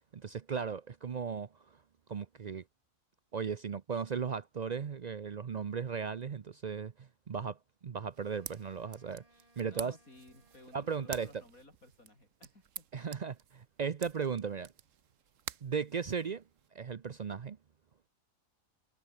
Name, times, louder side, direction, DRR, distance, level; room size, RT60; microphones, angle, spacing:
voice 1, 0.1-1.8 2.1-2.6 3.3-9.2 9.6-10.0 10.7-11.3 12.9-14.7 15.6-16.4 16.7-17.6, right 6 dB, 85° right, 0.3 m, -36 dB
Wind instrument woodwind instrument, 8.1-11.7, right 1 dB, 20° right, 7.1 m, -68 dB
sound 1, 8.1-16.7, right 9 dB, 55° right, 1.2 m, -49 dB
voice 2, 9.6-13.1, left 2 dB, 55° left, 7.5 m, -57 dB
omnidirectional pair, 1.7 m